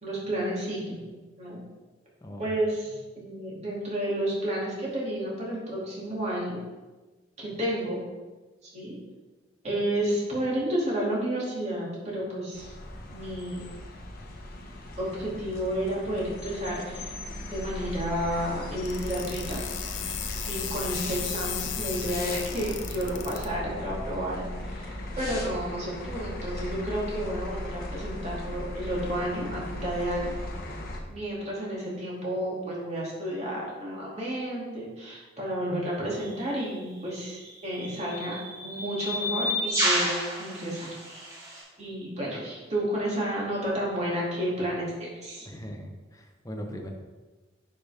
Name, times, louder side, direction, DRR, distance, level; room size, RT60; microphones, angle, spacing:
voice 1, 0.0-1.0 1.4-1.6 2.4-6.6 7.4-8.0 8.7-8.9 9.6-12.7 13.1-13.7 15.0-17.1 17.5-19.6 20.4-30.3 31.1-38.3 38.6-40.1 40.4-41.0 41.8-45.5, right 1 dB, 35° right, -5 dB, 2.6 m, -31 dB
voice 2, 2.2-2.6 45.4-46.9, equal, 20° left, 2 dB, 1.0 m, -40 dB
sound 1, 12.5-31.0, left 1 dB, 50° left, 1.1 m, -37 dB
sound 2, 18.9-23.5, left 9 dB, 75° left, 0.7 m, -35 dB
sound 3, 36.2-36.4 37.4-41.6, equal, 15° right, 2.0 m, -30 dB
9.6 x 5.5 x 3.5 m, 1.2 s
head